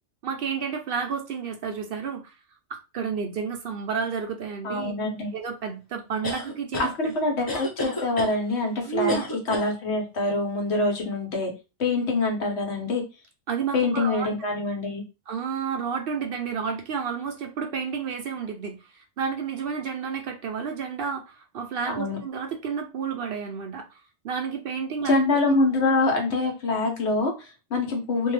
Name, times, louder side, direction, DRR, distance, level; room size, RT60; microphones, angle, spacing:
voice 1, 0.2-2.4 2.7-4.9 5.3-7.1 8.8-9.2 13.5-14.3 15.3-25.1, right 6 dB, 65° right, 0.7 m, -31 dB
voice 2, 4.6-5.3 6.8-9.2 9.5-11.5 11.8-13.0 13.7-15.0 21.9-22.2 25.0-28.3, left 2 dB, 75° left, 1.2 m, -25 dB
sound 1, 6.2-6.9 7.5-8.3 9.1-9.7, left 2 dB, 25° left, 0.5 m, -30 dB
2.6 x 2.3 x 3.1 m
omnidirectional pair, 1.2 m